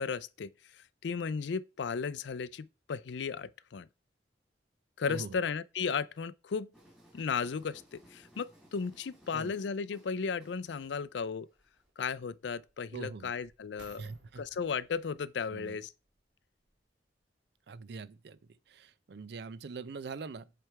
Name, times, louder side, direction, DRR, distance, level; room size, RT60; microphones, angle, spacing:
voice 1, 0.0-3.9 5.0-6.7 7.1-11.5 12.0-14.1 14.4-15.9, left 5 dB, 75° left, 0.4 m, -35 dB
voice 2, 5.1-5.4 9.3-9.5 12.9-13.3 14.0-14.4 15.5-15.8 17.7-20.5, right 4 dB, 65° right, 0.5 m, -43 dB
sound 1, 6.7-11.9, equal, ahead, 2.5 m, -60 dB
sound 2, 11.6-16.9 17.5-17.6, right 3 dB, 90° right, 1.6 m, -61 dB
7.5 x 3.3 x 4.6 m
head